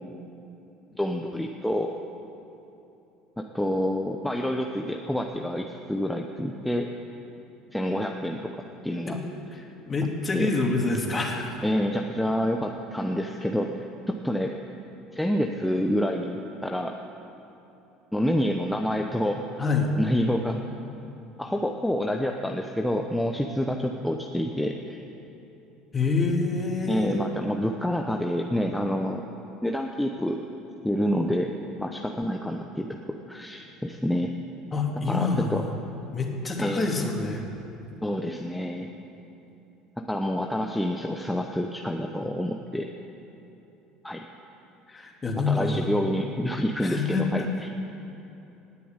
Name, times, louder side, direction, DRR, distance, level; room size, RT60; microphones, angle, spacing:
voice 1, 0.9-2.0 3.4-6.9 7.7-8.4 8.8-9.2 10.3-10.5 11.6-14.5 15.1-16.9 18.1-19.4 20.0-20.6 21.4-25.0 26.9-29.3 29.6-30.4 30.8-31.5 31.8-32.9 33.3-34.3 35.1-35.6 36.6-36.8 38.0-38.9 40.0-42.9 44.0-44.2 45.5-47.7, equal, 5° left, 2 dB, 0.9 m, -28 dB
voice 2, 9.5-11.6 19.6-19.9 25.9-27.2 34.7-35.7 36.1-37.4 44.9-45.9 46.8-47.5, left 3 dB, 25° left, 1 dB, 2.6 m, -27 dB
18.0 x 7.0 x 9.0 m, 2.9 s
supercardioid pair, 90°, 0 cm